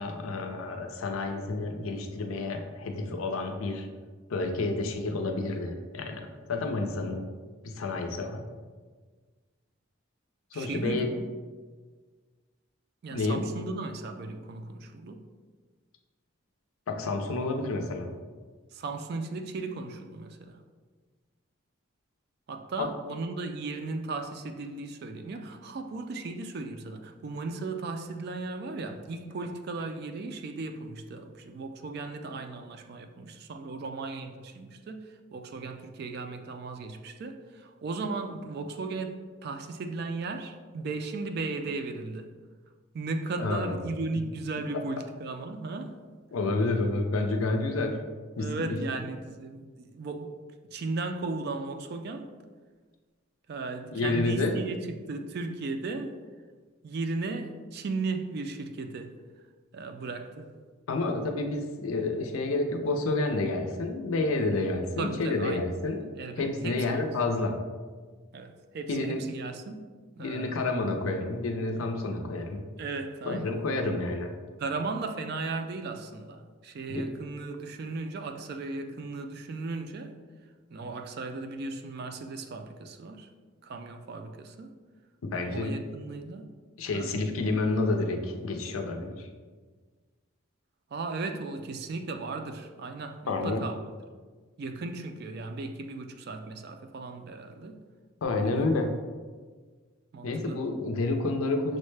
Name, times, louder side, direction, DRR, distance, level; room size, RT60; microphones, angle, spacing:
voice 1, 0.0-3.9 4.3-7.3 7.6-8.4 10.5-11.1 13.1-13.4 16.9-18.2 22.8-22.9 43.4-43.8 46.3-48.0 48.4-48.8 53.9-54.6 60.9-67.6 68.9-69.2 70.2-72.7 73.3-74.4 76.9-77.0 85.2-85.8 86.8-89.3 93.3-93.6 98.2-98.9 100.2-101.8, left 2 dB, 85° left, 4 dB, 0.5 m, -29 dB
voice 2, 10.5-11.3 13.0-15.2 18.7-20.6 22.5-42.3 42.9-46.0 48.4-50.4 50.7-52.3 53.5-56.2 56.8-59.4 59.7-60.5 65.0-65.7 66.2-67.1 68.3-69.8 70.1-70.7 72.8-73.6 73.8-73.9 74.6-80.2 80.7-83.3 83.6-84.8 85.3-86.5 86.9-87.2 90.9-93.8 94.6-97.8 98.4-98.7 100.1-100.6, right 3 dB, 50° right, 7 dB, 0.3 m, -36 dB
6.2 x 2.1 x 3.2 m, 1.5 s
head